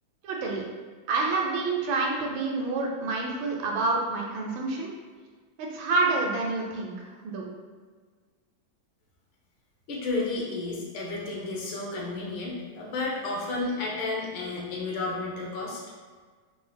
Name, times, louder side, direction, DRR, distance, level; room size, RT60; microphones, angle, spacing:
voice 1, 0.2-0.6 1.1-4.9 5.6-7.5, right 3 dB, 80° right, 0 dB, 1.4 m, -28 dB
voice 2, 9.9-15.8, left 3 dB, 80° left, -2 dB, 1.6 m, -32 dB
4.5 x 2.0 x 3.3 m, 1.5 s
omnidirectional pair, 2.1 m